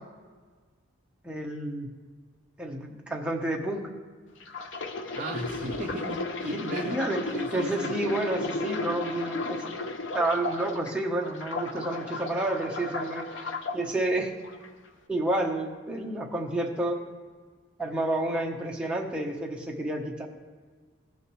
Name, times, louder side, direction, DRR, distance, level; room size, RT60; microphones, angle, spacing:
voice 1, 1.2-1.9 2.6-3.9 6.5-7.2 7.5-9.8 10.1-14.3 15.1-17.0 17.8-20.3, right 1 dB, 5° right, -1 dB, 0.9 m, -30 dB
sound 1, 4.4-10.9 11.3-13.8 14.4-14.7, left 3 dB, 70° left, 0.7 m, -34 dB
voice 2, 5.1-7.0 7.3-8.0, right 1 dB, 40° right, 1 dB, 0.6 m, -36 dB
16.0 x 6.4 x 3.1 m, 1.5 s
head